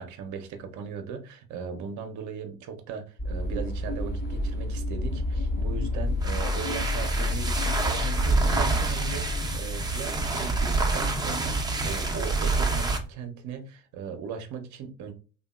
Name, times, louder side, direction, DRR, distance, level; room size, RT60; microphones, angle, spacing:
voice 1, 0.0-15.1, right 6 dB, 55° right, 7 dB, 0.7 m, -38 dB
sound 1, 3.2-10.6, left 2 dB, 25° left, 1.0 m, -30 dB
sound 2, 6.1-13.1, right 3 dB, 10° right, 0.6 m, -27 dB
2.8 x 2.3 x 2.3 m, 0.35 s
hypercardioid pair, 75°, 35 cm